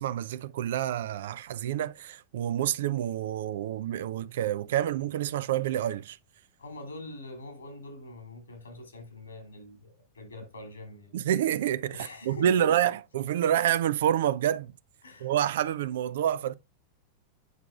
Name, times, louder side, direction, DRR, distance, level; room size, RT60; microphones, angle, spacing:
voice 1, 0.0-6.2 11.1-14.7 15.2-16.5, right 11 dB, 60° right, 0.4 m, -28 dB
voice 2, 6.6-11.1 11.9-12.9 15.0-15.3, left 1 dB, 75° left, 2.9 m, -43 dB
9.5 x 5.8 x 2.3 m
figure-of-eight pair, 90°, 0 cm